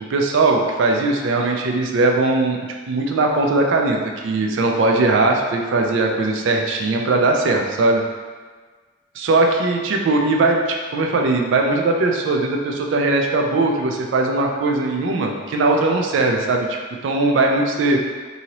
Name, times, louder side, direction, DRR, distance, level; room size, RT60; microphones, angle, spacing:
voice 1, 0.1-2.6 2.9-4.0 4.2-8.0 9.2-16.7 17.0-18.0, right 2 dB, 75° right, 1 dB, 0.4 m, -19 dB
2.8 x 2.7 x 2.9 m, 1.4 s
head